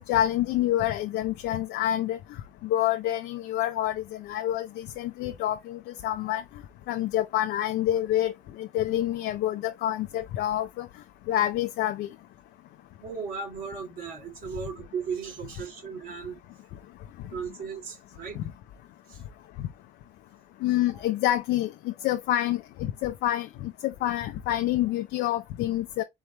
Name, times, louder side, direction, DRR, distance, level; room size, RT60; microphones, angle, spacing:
voice 1, 0.1-2.2 2.6-6.4 6.9-10.9 11.3-12.1 18.3-18.4 19.6-19.7 20.6-26.0, left 13 dB, 80° left, 0.6 m, -27 dB
voice 2, 13.0-16.4 17.3-18.4 19.1-19.2, right 6 dB, 60° right, 2.7 m, -36 dB
4.4 x 3.5 x 3.0 m
cardioid pair, 110°, 17 cm